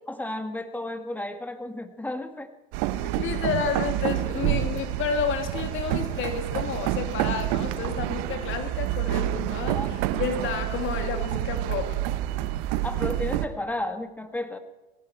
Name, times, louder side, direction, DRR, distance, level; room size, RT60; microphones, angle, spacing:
voice 1, 0.1-2.5 9.7-9.9 12.8-14.6, left 1 dB, 5° left, 8 dB, 1.7 m, -33 dB
sound 1, 2.7-13.5, right 14 dB, 55° right, 1.1 m, -28 dB
voice 2, 3.0-12.0, left 7 dB, 45° left, 5 dB, 2.9 m, -31 dB
19.0 x 16.5 x 4.5 m, 1.1 s
hypercardioid pair, 90°, 29 cm